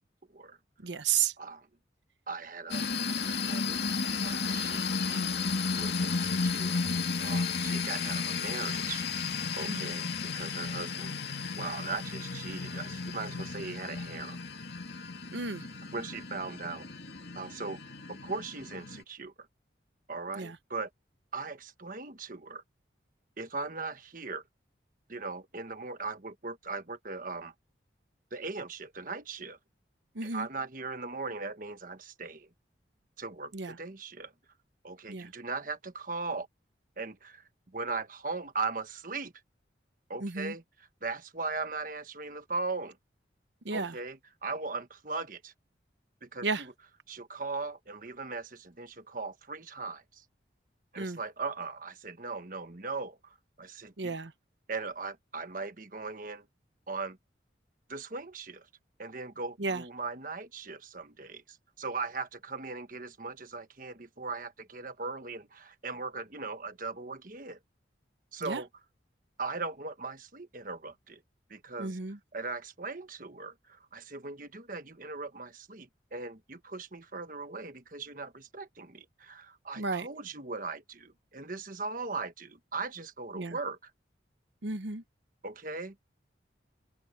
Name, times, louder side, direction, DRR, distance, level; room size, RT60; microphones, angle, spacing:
voice 1, 0.8-1.3 9.7-9.9 15.3-15.7 20.4-20.6 30.1-30.5 33.5-33.8 35.1-35.3 40.2-40.5 43.6-44.0 46.4-46.6 51.0-51.2 54.0-54.3 59.6-59.8 68.4-68.6 71.8-72.2 79.8-80.1 83.3-83.6 84.6-85.0, right 5 dB, 75° right, 1.0 m, -33 dB
voice 2, 2.3-2.9 3.4-3.8 4.2-5.3 5.8-6.8 7.2-9.1 9.5-11.1 11.5-14.4 15.9-16.9 17.3-17.8 18.1-19.3 20.1-20.9 21.3-22.6 23.4-24.4 25.1-27.5 28.3-29.6 30.2-32.5 33.2-34.3 34.8-36.5 37.0-39.3 40.1-43.0 43.7-44.2 44.4-45.5 46.2-46.7 47.1-50.2 50.9-54.1 54.7-56.5 56.9-57.2 57.9-58.7 59.0-67.6 68.3-68.7 69.4-71.2 71.5-72.0 72.3-83.9 85.4-85.9, right 4 dB, 45° right, 1.3 m, -39 dB
sound 1, 2.7-19.0, left 4 dB, 60° left, 2.3 m, -33 dB
open air
head